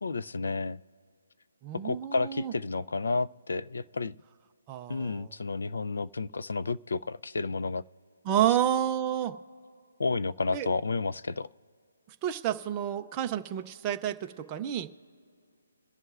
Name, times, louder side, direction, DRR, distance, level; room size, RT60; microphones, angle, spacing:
voice 1, 0.0-0.8 1.8-4.1 4.9-7.8 10.0-11.5, left 3 dB, 70° left, 0.4 m, -31 dB
voice 2, 1.6-2.5 4.7-5.3 8.2-9.4 10.5-10.7 12.2-14.9, right 11 dB, 10° right, 0.4 m, -30 dB
27.0 x 11.0 x 2.4 m
hypercardioid pair, 180°, 0 cm